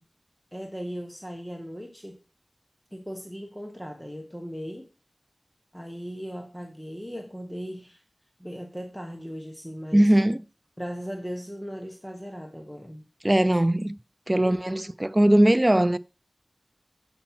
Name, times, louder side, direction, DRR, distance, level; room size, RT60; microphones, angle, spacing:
voice 1, 0.5-2.2 2.9-4.9 5.7-8.0 8.4-10.1 10.8-13.1 14.3-14.8, equal, 5° left, 1.2 m, -38 dB
voice 2, 9.9-10.4 13.2-14.0 14.3-16.0, right 1 dB, 20° right, 0.4 m, -20 dB
7.1 x 5.2 x 4.4 m
wide cardioid pair, 60°, 0 cm